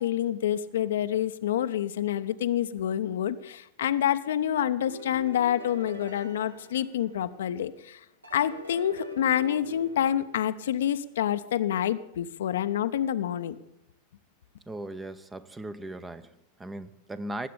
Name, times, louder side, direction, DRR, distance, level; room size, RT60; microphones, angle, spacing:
voice 1, 0.0-8.0 8.3-13.6, left 10 dB, 60° left, 11 dB, 0.7 m, -27 dB
sound 1, 4.7-7.6 8.2-11.1, equal, 80° right, 2.0 m, -44 dB
voice 2, 14.7-17.5, right 1 dB, 10° right, 14 dB, 0.8 m, -38 dB
19.5 x 8.5 x 8.4 m, 0.80 s
figure-of-eight pair, 90°, 0 cm